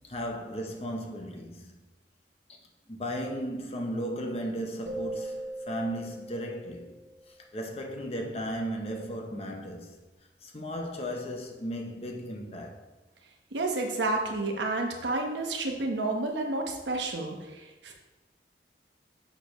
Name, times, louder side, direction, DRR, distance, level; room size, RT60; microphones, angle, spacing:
voice 1, 0.0-1.8 2.5-2.6 2.9-6.9 7.3-9.9 10.4-12.8, equal, 35° left, 0.7 m, -35 dB
sound 1, 4.9-7.5, right 1 dB, 40° right, 0.8 m, -40 dB
voice 2, 13.5-17.9, right 2 dB, 80° right, 1.0 m, -30 dB
6.5 x 6.5 x 3.1 m
head